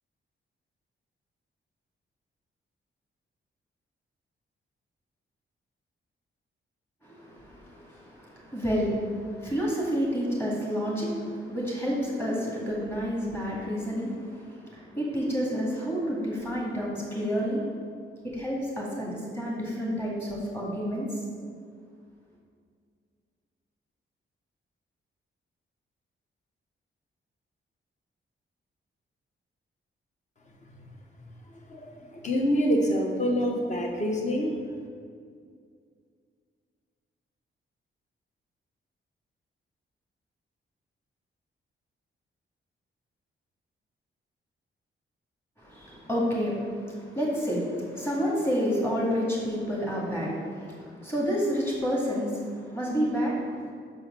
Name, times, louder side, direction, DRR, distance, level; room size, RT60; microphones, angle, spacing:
voice 1, 7.0-17.7 18.2-21.2 45.6-53.7, equal, 10° left, -4 dB, 2.0 m, -29 dB
voice 2, 31.7-34.5, equal, 35° left, 1 dB, 1.0 m, -26 dB
6.2 x 4.8 x 6.1 m, 2.2 s
wide cardioid pair, 150°, 21 cm